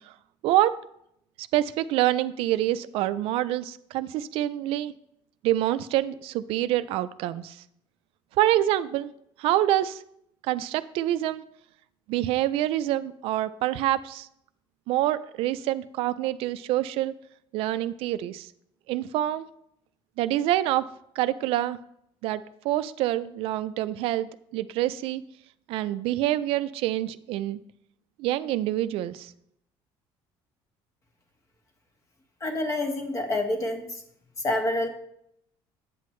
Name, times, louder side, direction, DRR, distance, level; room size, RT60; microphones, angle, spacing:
voice 1, 1.5-4.9 5.4-7.5 8.4-9.1 9.4-10.0 10.5-11.4 12.1-14.3 14.9-17.1 17.5-18.5 18.9-19.5 20.2-20.8 21.2-21.8 22.2-24.3 24.5-25.2 25.7-27.6 28.2-29.3, right 14 dB, 70° right, 14 dB, 0.4 m, -26 dB
voice 2, 32.4-33.9 34.4-34.9, left 1 dB, 30° left, 5 dB, 1.2 m, -27 dB
8.4 x 7.6 x 3.1 m, 0.74 s
cardioid pair, 135°, 10 cm